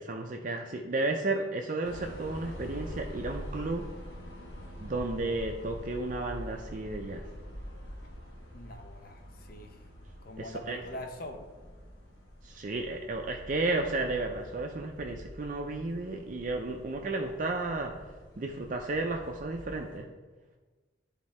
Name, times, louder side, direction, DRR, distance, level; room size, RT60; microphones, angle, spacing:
voice 1, 0.0-3.8 4.8-7.2 10.4-10.8 12.4-17.9 18.4-20.1, right 2 dB, 40° right, 3 dB, 0.5 m, -33 dB
sound 1, 1.8-20.0, equal, 80° left, 1.5 m, -45 dB
voice 2, 8.5-9.2 9.5-9.8 10.2-11.4, left 1 dB, 50° left, 5 dB, 0.7 m, -43 dB
10.5 x 3.6 x 4.2 m, 1.3 s
head